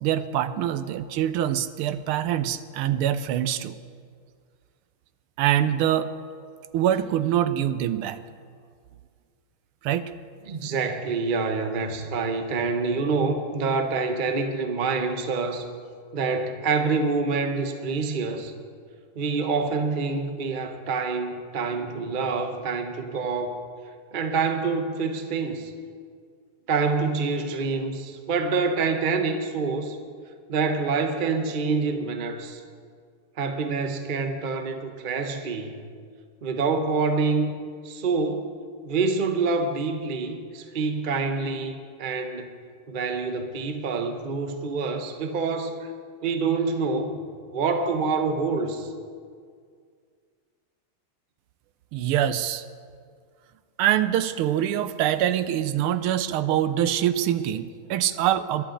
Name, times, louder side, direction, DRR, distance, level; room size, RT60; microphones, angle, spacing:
voice 1, 0.0-3.8 5.4-6.1 6.7-8.2 9.8-10.1 51.9-52.6 53.8-58.6, right 11 dB, 80° right, 13 dB, 1.5 m, -24 dB
voice 2, 10.5-15.7 16.1-18.5 19.1-23.6 24.1-25.7 26.7-30.0 30.5-32.6 33.4-35.8 36.4-37.5 37.8-38.5 38.8-42.5 42.9-45.9 46.2-47.2 47.5-48.9, right 4 dB, 60° right, 6 dB, 0.5 m, -26 dB
21.5 x 11.5 x 3.9 m, 2.1 s
omnidirectional pair, 2.4 m